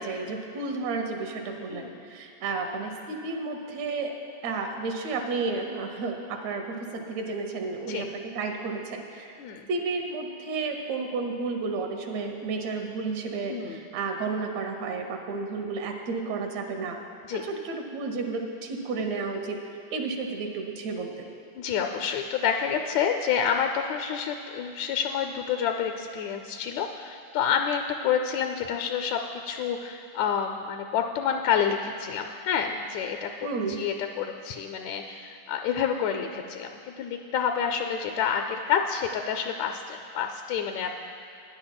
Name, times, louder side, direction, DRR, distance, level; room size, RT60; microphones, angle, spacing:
voice 1, 0.0-4.1 4.4-9.4 9.7-17.0 17.4-19.6 19.9-21.3 33.4-33.8, right 4 dB, 70° right, 3 dB, 1.9 m, -32 dB
voice 2, 1.7-2.0 7.9-8.1 9.4-9.7 13.5-13.8 17.2-17.4 21.6-33.3 33.7-41.0, left 7 dB, 80° left, 4 dB, 1.6 m, -28 dB
19.0 x 10.5 x 2.2 m, 2.6 s
omnidirectional pair, 3.6 m